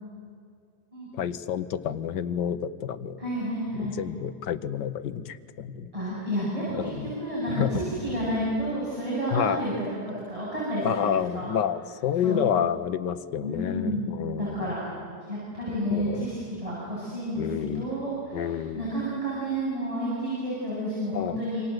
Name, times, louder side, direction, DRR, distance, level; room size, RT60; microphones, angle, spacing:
voice 1, 1.1-3.2 3.7-5.9 6.7-7.1 7.5-7.7 9.3-9.6 10.8-14.7 15.9-16.3 17.4-17.9 18.3-18.9 21.1-21.4, left 9 dB, 85° left, 13 dB, 1.6 m, -29 dB
voice 2, 3.2-4.0 5.9-11.1 11.3-11.5 12.2-12.4 13.4-14.9 15.3-16.4 16.6-21.6, equal, 20° right, -8 dB, 8.2 m, -30 dB
27.5 x 26.5 x 8.0 m, 2.3 s
omnidirectional pair, 1.8 m